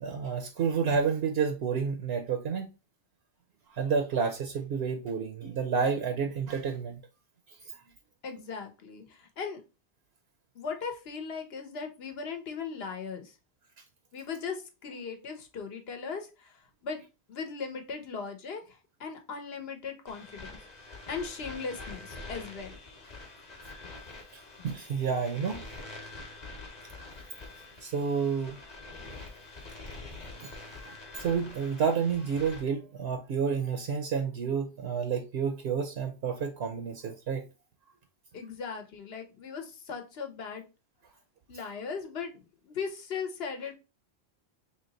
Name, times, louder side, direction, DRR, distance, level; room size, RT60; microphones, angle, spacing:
voice 1, 0.0-2.7 3.7-7.0 24.6-25.6 27.8-28.6 30.4-30.5 30.8-37.4, right 6 dB, 70° right, 0.8 m, -30 dB
voice 2, 8.2-9.6 10.5-13.4 14.1-20.6 21.1-22.8 23.8-23.9 24.6-24.7 38.3-40.6 41.5-43.7, left 5 dB, 65° left, 1.0 m, -38 dB
sound 1, 20.1-32.6, left 2 dB, 40° left, 1.0 m, -46 dB
3.1 x 2.9 x 3.9 m
omnidirectional pair, 1.1 m